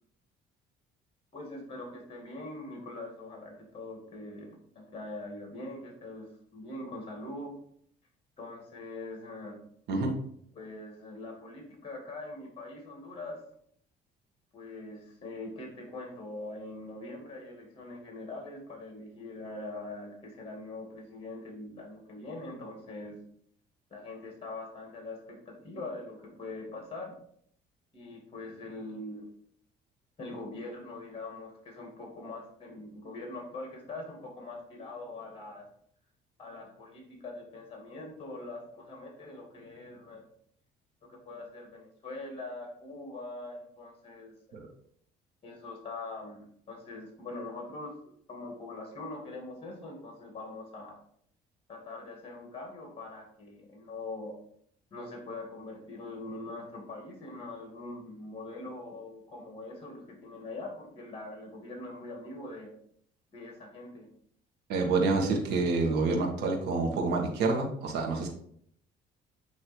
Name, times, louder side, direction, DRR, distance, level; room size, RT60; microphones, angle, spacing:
voice 1, 1.3-7.5 8.4-9.6 10.5-13.4 14.5-23.2 23.9-27.1 27.9-29.3 30.2-35.7 36.4-40.3 41.1-44.6 45.4-47.9 48.3-50.9 51.7-54.4 54.9-62.7 63.3-64.1, left 2 dB, 35° left, 0 dB, 2.3 m, -43 dB
voice 2, 64.7-68.3, right 3 dB, 80° right, 1 dB, 1.6 m, -28 dB
8.6 x 3.1 x 4.5 m, 0.66 s
cardioid pair, 110°, 17 cm